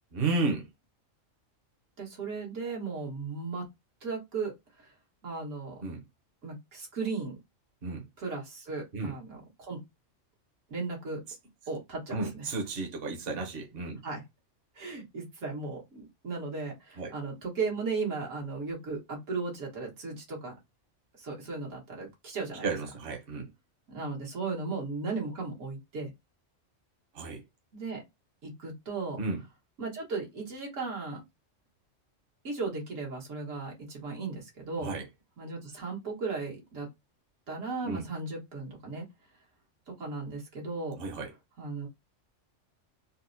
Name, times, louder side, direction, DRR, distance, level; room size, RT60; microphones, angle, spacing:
voice 1, 0.1-0.6 5.8-6.0 7.8-8.0 8.9-9.1 12.1-14.0 17.0-17.1 22.6-23.5 27.1-27.4 29.2-29.4 34.8-35.0 37.8-38.0 41.0-41.3, right 3 dB, 55° right, 1.0 m, -32 dB
voice 2, 2.0-3.7 4.0-4.9 5.2-5.8 6.4-7.4 8.2-9.8 10.7-11.2 11.7-12.5 14.0-14.2 14.7-20.5 21.2-22.7 23.9-26.1 27.7-28.0 28.4-29.2 29.8-31.2 32.4-34.9 35.4-36.9 37.5-39.0 39.9-41.0 41.6-41.9, right 4 dB, 80° right, 1.7 m, -36 dB
4.1 x 2.1 x 2.6 m
omnidirectional pair, 1.3 m